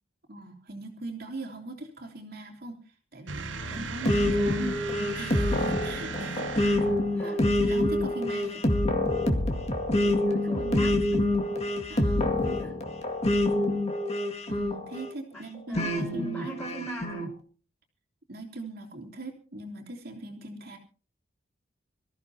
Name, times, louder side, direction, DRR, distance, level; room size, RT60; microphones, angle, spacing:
voice 1, 0.3-4.6 5.1-6.8 7.1-8.7 11.9-12.3 14.5-16.5 18.3-20.8, right 2 dB, 55° right, 1 dB, 3.3 m, -40 dB
sound 1, 3.3-7.2, right 3 dB, 90° right, 1.9 m, -37 dB
voice 2, 3.6-5.2 7.1-7.4 10.0-11.6 12.1-12.8 15.3-15.4 15.7-17.3, equal, 10° left, 2 dB, 4.4 m, -40 dB
sound 2, 4.1-15.1 15.8-17.3, left 1 dB, 35° left, 2.1 m, -26 dB
25.5 x 14.5 x 2.8 m, 0.37 s
head